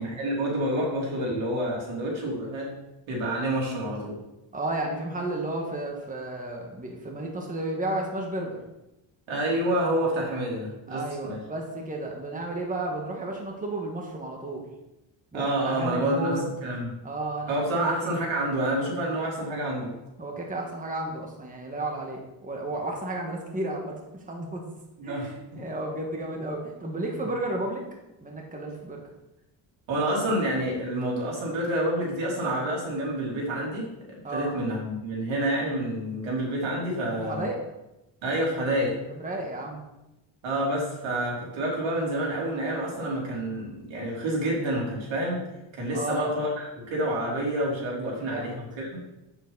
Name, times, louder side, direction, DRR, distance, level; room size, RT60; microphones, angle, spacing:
voice 1, 0.0-2.7 3.1-4.2 9.3-11.4 15.3-16.9 17.5-19.9 25.0-25.3 29.9-37.5 38.2-39.0 40.4-45.4 45.7-49.0, right 1 dB, 80° right, -3 dB, 3.3 m, -28 dB
voice 2, 4.5-8.6 10.9-14.6 15.3-16.4 17.0-18.1 20.2-24.7 25.0-27.8 28.2-29.0 34.2-34.5 37.1-37.6 39.2-39.8 45.9-46.3 48.0-48.6, right 2 dB, 15° right, 0 dB, 1.5 m, -33 dB
8.1 x 7.3 x 4.0 m, 0.95 s
cardioid pair, 115°, 46 cm